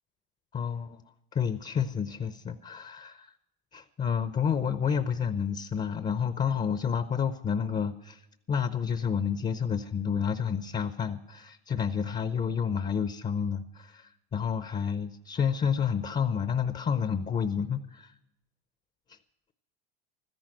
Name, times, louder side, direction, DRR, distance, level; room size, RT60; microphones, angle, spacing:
voice 1, 0.5-1.0 1.3-3.3 3.7-18.1 19.1-19.2, left 7 dB, 25° left, 12 dB, 0.7 m, -30 dB
13.5 x 10.5 x 7.8 m, 0.92 s
supercardioid pair, 100°, 29 cm